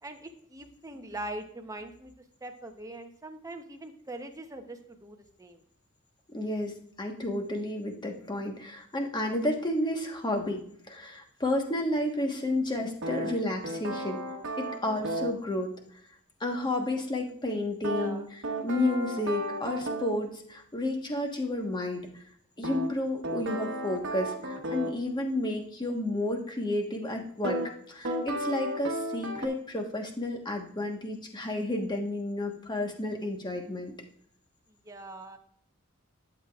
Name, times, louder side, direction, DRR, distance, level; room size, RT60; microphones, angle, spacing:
voice 1, 0.0-2.1 2.4-5.6 17.9-18.3 34.8-35.4, right 1 dB, 15° right, 5 dB, 0.8 m, -42 dB
voice 2, 6.3-14.2 14.6-15.7 16.4-22.1 22.6-27.6 27.9-33.9, left 1 dB, 20° left, 3 dB, 1.3 m, -31 dB
sound 1, 13.0-15.4 17.8-20.2 22.6-25.0 27.4-27.7 28.0-29.5, right 1 dB, 60° right, 1.2 m, -34 dB
11.5 x 7.4 x 2.4 m, 0.63 s
head